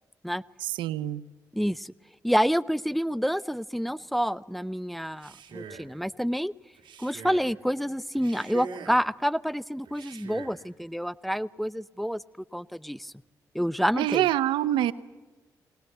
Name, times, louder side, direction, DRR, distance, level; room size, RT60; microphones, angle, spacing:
voice 1, 0.6-1.2 14.0-14.9, right 13 dB, 90° right, 17 dB, 0.7 m, -25 dB
voice 2, 1.5-1.9 2.2-6.5 7.0-12.2 12.5-13.1 13.5-14.2, equal, ahead, 18 dB, 0.7 m, -28 dB
Male speech man speaking, 5.0-6.0 6.7-7.5 8.1-9.1 9.8-10.6, right 6 dB, 75° right, 2.7 m, -43 dB
21.0 x 19.0 x 8.0 m, 1.2 s
supercardioid pair, 50°, 8 cm